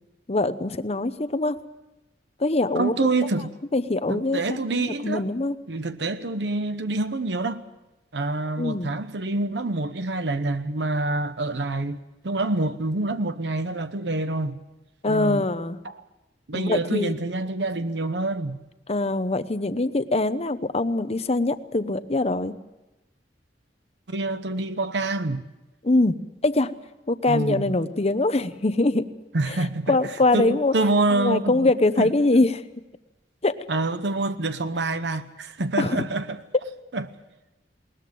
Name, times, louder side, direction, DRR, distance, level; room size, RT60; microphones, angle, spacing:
voice 1, 0.3-1.6 2.4-3.1 3.7-4.4 4.8-5.5 8.6-8.9 15.0-15.8 16.5-17.1 18.9-22.5 25.8-26.2 26.4-26.7 27.1-29.1 29.5-29.6 29.9-30.7 31.1-32.6 33.4-33.5 35.8-36.0, left 2 dB, 35° left, 0.9 m, -23 dB
voice 2, 2.7-3.5 4.1-5.3 5.7-7.6 8.1-12.0 12.2-14.6 15.1-15.4 15.8-16.0 16.5-18.6 24.1-25.5 27.3-27.7 29.3-30.0 30.3-31.7 32.0-32.1 33.7-36.4 36.9-37.1, right 2 dB, 75° right, 0.9 m, -26 dB
21.0 x 19.5 x 7.7 m
head